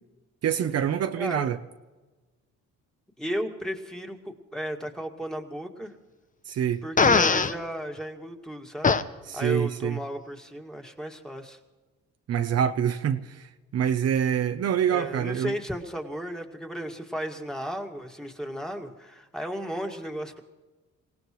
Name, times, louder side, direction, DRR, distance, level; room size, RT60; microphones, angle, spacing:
voice 1, 0.4-1.6 6.5-6.8 9.3-10.0 12.3-15.5, right 9 dB, 55° right, 0.8 m, -26 dB
voice 2, 1.2-1.5 3.2-5.9 6.8-9.0 9.3-11.6 14.9-20.4, equal, ahead, 2.0 m, -34 dB
Fart, 7.0-7.5 8.8-9.0, left 4 dB, 25° left, 0.8 m, -19 dB
25.5 x 18.0 x 3.1 m
cardioid pair, 90°, 30 cm